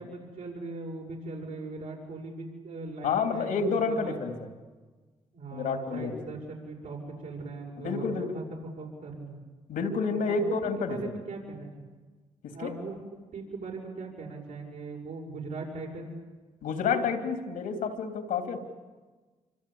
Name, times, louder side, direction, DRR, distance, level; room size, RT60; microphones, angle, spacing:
voice 1, 0.0-4.2 5.3-8.4 8.8-9.4 10.3-11.9 12.5-13.0 13.3-16.1, right 3 dB, 80° right, -1 dB, 6.7 m, -39 dB
voice 2, 3.0-4.3 5.5-6.2 7.8-8.4 9.7-11.1 12.4-12.7 16.6-18.6, left 5 dB, 90° left, 6 dB, 3.1 m, -29 dB
27.0 x 25.0 x 8.6 m, 1.3 s
cardioid pair, 70°, 14 cm